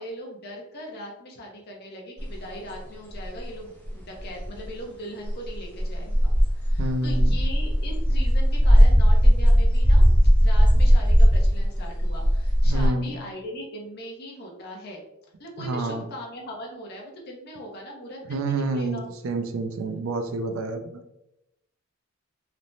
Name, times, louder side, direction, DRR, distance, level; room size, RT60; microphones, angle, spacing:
voice 1, 0.0-10.1 10.4-15.0 15.4-19.1, equal, 50° left, -1 dB, 0.6 m, -40 dB
sound 1, 2.2-2.3 3.1-3.3 3.9-4.0 4.2-4.7 5.3-12.9, equal, 5° left, 0.5 m, -18 dB
voice 2, 6.8-7.4 12.6-13.2 15.6-16.0 18.3-21.0, right 2 dB, 70° right, 7 dB, 0.4 m, -28 dB
3.2 x 2.0 x 2.6 m, 0.87 s
head